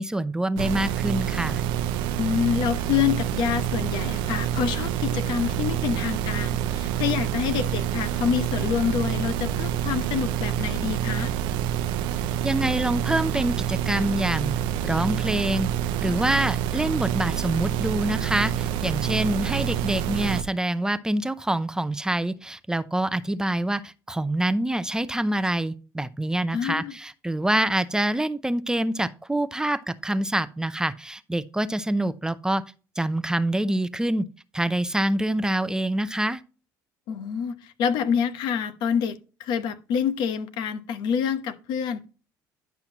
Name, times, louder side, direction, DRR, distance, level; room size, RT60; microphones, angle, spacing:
voice 1, 0.0-1.6 12.4-14.5 14.8-15.7 16.0-32.6 33.0-34.2 34.5-36.4, right 1 dB, 10° right, 0.6 m, -26 dB
sound 1, 0.6-20.4, right 10 dB, 80° right, 0.6 m, -27 dB
voice 2, 2.2-11.3 26.5-26.9 27.5-27.7 37.1-42.1, left 8 dB, 70° left, 1.0 m, -27 dB
10.5 x 5.7 x 2.9 m
supercardioid pair, 85°, 8 cm